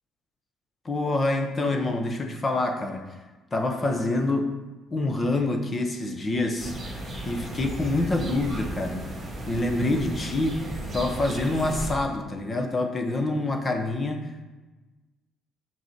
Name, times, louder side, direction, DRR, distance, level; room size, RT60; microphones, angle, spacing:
voice 1, 0.8-3.0 3.5-4.5 4.9-9.0 9.5-10.6 10.9-14.2, left 2 dB, 25° left, 5 dB, 0.8 m, -26 dB
sound 1, 6.6-11.9, right 1 dB, 15° right, 2.4 m, -35 dB
6.7 x 4.8 x 4.3 m, 1.2 s
cardioid pair, 150°, 0 cm